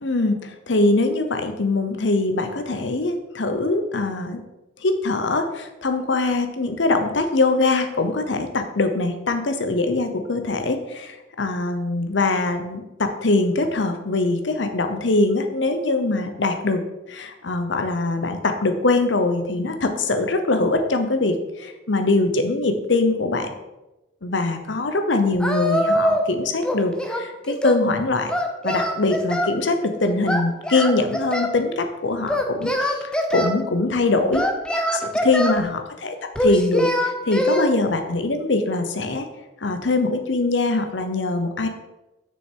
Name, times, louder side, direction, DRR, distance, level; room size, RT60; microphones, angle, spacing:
voice 1, 0.0-4.4 4.8-16.8 17.1-23.5 24.2-28.3 28.6-34.4 34.9-39.3 39.6-41.7, left 2 dB, 85° left, 7 dB, 0.9 m, -22 dB
Singing, 25.4-26.3 26.6-27.8 28.3-29.6 30.3-31.6 32.3-33.5 34.3-35.6 36.3-37.7, equal, 5° left, 0.6 m, -23 dB
6.4 x 6.3 x 4.6 m, 1.0 s
head